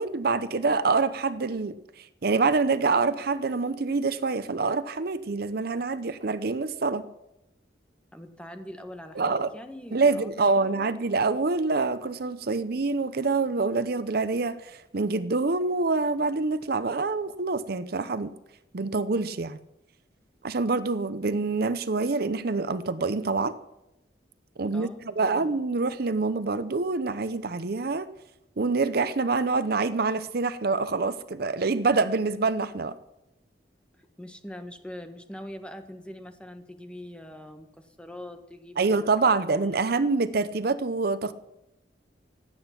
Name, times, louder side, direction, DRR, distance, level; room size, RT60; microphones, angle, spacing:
voice 1, 0.0-7.1 9.2-9.5 9.9-18.4 18.7-19.6 20.4-23.6 24.6-28.1 28.6-33.0 38.8-41.3, right 3 dB, 60° right, 13 dB, 0.7 m, -26 dB
voice 2, 8.1-11.1 24.7-25.5 34.0-39.8, left 1 dB, 5° left, 6 dB, 1.4 m, -43 dB
26.0 x 8.9 x 5.9 m, 0.88 s
head